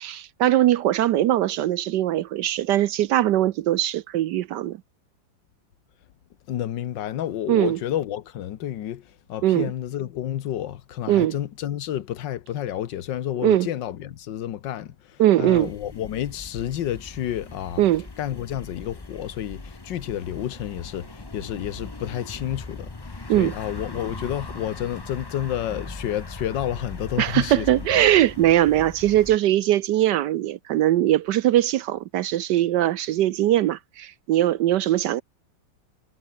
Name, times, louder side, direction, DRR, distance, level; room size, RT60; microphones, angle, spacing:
voice 1, 0.0-4.8 7.5-7.8 9.4-9.7 11.1-11.3 13.4-13.7 15.2-15.7 17.8-18.0 23.3-23.5 27.2-35.2, right 13 dB, 70° right, 1.2 m, -21 dB
voice 2, 6.5-17.8 18.2-22.9 23.3-28.0, left 11 dB, 70° left, 1.6 m, -30 dB
sound 1, 15.5-29.4, left 3 dB, 15° left, 0.8 m, -39 dB
omnidirectional pair, 2.1 m